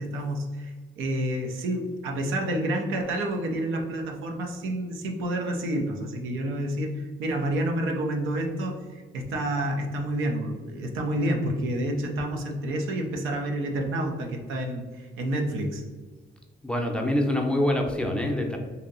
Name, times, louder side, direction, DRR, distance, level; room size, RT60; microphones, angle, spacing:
voice 1, 0.0-15.8, right 1 dB, 90° right, 2 dB, 0.6 m, -29 dB
voice 2, 16.6-18.6, left 1 dB, 5° left, 1 dB, 0.6 m, -25 dB
2.8 x 2.7 x 3.9 m, 1.4 s
cardioid pair, 90°, 20 cm